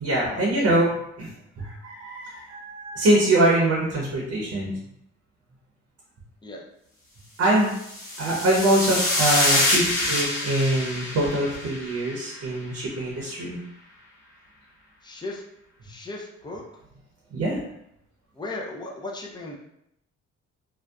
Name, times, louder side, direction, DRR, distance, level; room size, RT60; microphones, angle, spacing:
voice 1, 0.0-4.7 7.4-7.7 8.2-13.6 17.3-17.6, right 1 dB, 55° right, -3 dB, 0.7 m, -23 dB
sound 1, 7.7-12.2, left 1 dB, 45° left, 0.9 m, -25 dB
voice 2, 15.0-15.4 15.8-16.6 18.4-19.6, left 2 dB, 15° left, -1 dB, 0.5 m, -36 dB
2.6 x 2.1 x 2.3 m, 0.79 s
cardioid pair, 90°, 30 cm